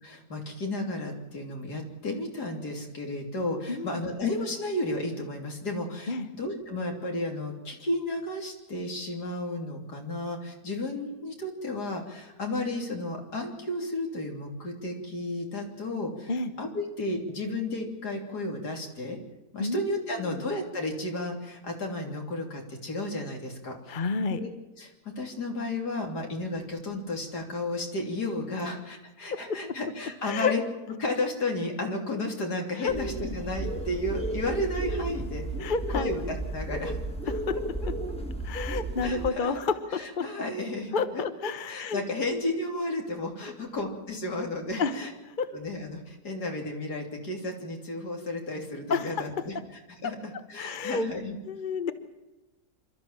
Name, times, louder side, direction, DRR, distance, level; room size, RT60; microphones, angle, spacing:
voice 1, 0.0-16.3 16.6-19.2 19.5-24.0 24.3-24.5 24.8-30.6 31.0-35.4 35.9-37.0 39.0-39.6 39.9-41.2 41.7-45.1 45.5-49.5 50.0-51.4, left 2 dB, 80° left, 2 dB, 3.8 m, -33 dB
voice 2, 3.7-4.0 6.1-6.3 16.3-16.5 19.6-20.4 23.9-24.4 29.3-29.6 30.2-30.5 32.8-32.9 35.6-36.1 37.3-37.6 38.4-40.0 40.9-42.0 44.8-45.0 45.3-45.5 48.9-49.2 50.5-51.1 51.4-51.9, left 4 dB, 35° left, 10 dB, 1.1 m, -30 dB
sound 1, 32.9-39.3, right 2 dB, 5° left, 1.7 m, -33 dB
27.5 x 13.0 x 7.4 m, 1.1 s
omnidirectional pair, 1.7 m